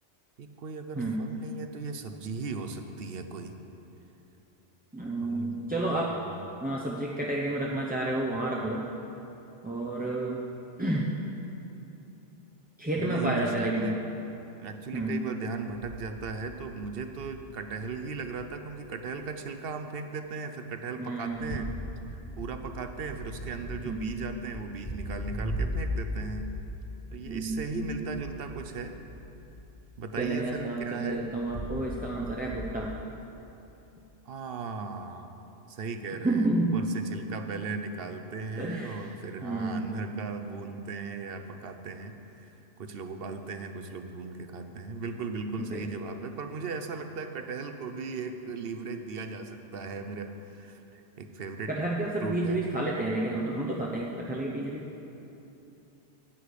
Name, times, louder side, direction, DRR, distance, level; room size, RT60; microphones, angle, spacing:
voice 1, 0.4-3.6 5.2-5.6 6.1-6.5 13.0-14.0 14.6-21.7 22.1-26.5 27.1-29.0 30.0-31.3 34.3-35.3 35.7-42.5 42.8-51.8 52.2-52.6, right 4 dB, 60° right, 7 dB, 0.9 m, -37 dB
voice 2, 4.9-6.1 6.6-8.8 9.6-10.4 10.8-11.1 12.8-13.9 14.9-15.2 21.0-21.6 23.8-24.1 27.3-28.0 30.2-32.9 36.2-36.8 37.1-37.2 38.6-39.0 39.4-39.9 45.6-45.9 51.7-54.8, right 2 dB, 10° right, -5 dB, 0.6 m, -30 dB
sound 1, 15.7-17.5 17.8-18.4 18.8-18.9 21.3-29.8 30.1-33.1, equal, 20° left, 1.1 m, -39 dB
9.6 x 8.7 x 6.6 m, 2.9 s
omnidirectional pair, 1.2 m